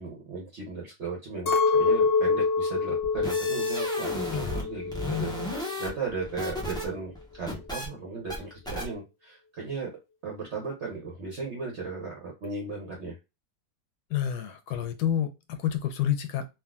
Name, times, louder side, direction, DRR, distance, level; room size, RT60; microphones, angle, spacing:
voice 1, 0.0-9.9 10.2-13.2, right 4 dB, 55° right, -2 dB, 0.9 m, -36 dB
Chink clink, 1.5-5.8 6.1-6.9, left 4 dB, 65° left, 0.6 m, -26 dB
sound 1, 3.0-4.6 4.9-6.8 7.1-7.9 8.3-8.4 8.7-8.8, left 2 dB, 5° left, 0.4 m, -33 dB
voice 2, 14.1-16.5, left 10 dB, 90° left, 9 dB, 1.2 m, -28 dB
3.5 x 2.4 x 2.2 m, 0.25 s
omnidirectional pair, 1.7 m